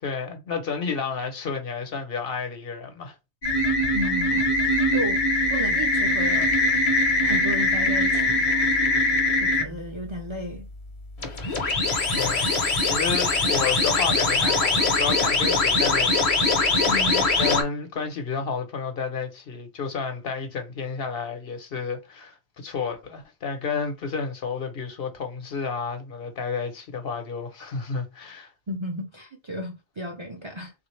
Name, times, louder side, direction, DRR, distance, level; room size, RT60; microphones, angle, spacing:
voice 1, 0.0-3.2 12.1-12.5 12.8-16.9 17.4-28.5, left 5 dB, 60° left, 1.0 m, -31 dB
sound 1, 3.4-9.6 11.2-17.6, left 2 dB, 40° left, 0.7 m, -22 dB
voice 2, 3.9-4.5 4.9-5.2 5.5-6.6 7.2-8.4 9.4-10.7 16.9-17.3 28.7-30.7, equal, 35° right, 0.5 m, -33 dB
3.5 x 2.5 x 3.1 m
omnidirectional pair, 1.1 m